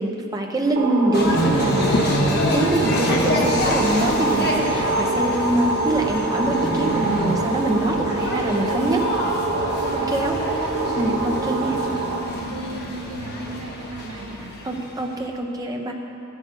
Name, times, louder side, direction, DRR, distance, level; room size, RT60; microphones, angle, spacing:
voice 1, 0.0-9.1 9.9-10.4 11.0-11.8 14.6-15.9, right 1 dB, 15° right, 1 dB, 0.7 m, -24 dB
sound 1, 0.8-12.2, right 3 dB, 55° right, 1.0 m, -26 dB
sound 2, 1.1-15.2, equal, 45° left, 1.1 m, -26 dB
sound 3, 1.9-7.8, left 3 dB, 65° left, 0.5 m, -35 dB
voice 2, 9.2-10.2 10.8-11.2 11.7-11.9 12.4-14.6, right 2 dB, 85° right, 2 dB, 0.8 m, -37 dB
12.5 x 6.2 x 5.5 m, 2.9 s
head